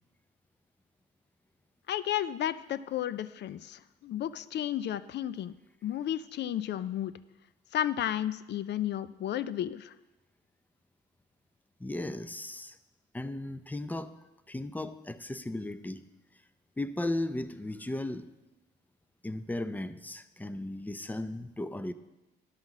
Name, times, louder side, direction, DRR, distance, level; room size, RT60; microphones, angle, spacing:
voice 1, 1.9-5.5 5.8-7.1 7.7-9.9, left 11 dB, 60° left, 15 dB, 0.5 m, -33 dB
voice 2, 11.8-12.8 13.1-14.2 14.5-16.0 16.8-18.3 19.2-21.9, left 1 dB, 10° left, 12 dB, 0.5 m, -36 dB
11.5 x 5.7 x 6.1 m, 1.0 s
cardioid pair, 90°, 20 cm